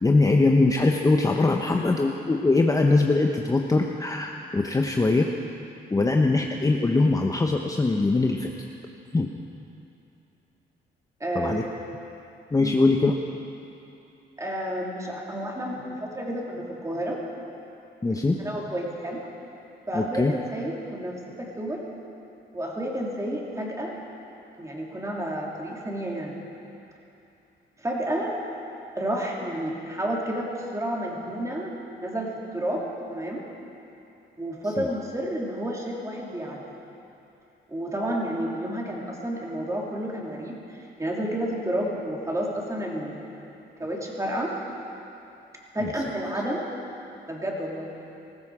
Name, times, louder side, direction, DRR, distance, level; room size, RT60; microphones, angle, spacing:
voice 1, 0.0-5.3 5.9-8.5 9.1-9.3 11.3-11.6 12.5-13.1 18.0-18.4 19.9-20.3 34.8-34.9, left 3 dB, 15° left, 2 dB, 0.8 m, -22 dB
voice 2, 11.2-11.6 12.6-12.7 14.4-17.2 18.4-19.2 19.9-21.8 22.5-23.9 24.6-26.4 27.8-28.4 28.9-33.5 34.4-36.6 37.7-43.4 43.8-44.5 45.7-46.6 47.3-47.9, right 1 dB, 15° right, -2 dB, 3.1 m, -30 dB
19.5 x 14.5 x 4.9 m, 2.9 s
cardioid pair, 90°, 20 cm